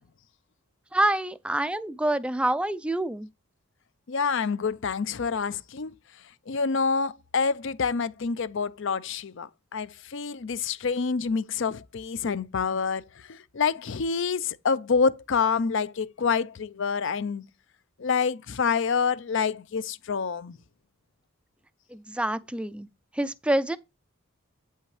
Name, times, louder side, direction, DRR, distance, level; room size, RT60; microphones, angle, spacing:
voice 1, 0.9-3.3 21.9-22.9 23.1-23.8, right 1 dB, 5° right, 0.3 m, -27 dB
voice 2, 4.1-5.9 6.5-13.0 13.3-17.4 18.0-20.6, left 5 dB, 60° left, 0.5 m, -27 dB
8.5 x 5.5 x 3.2 m
head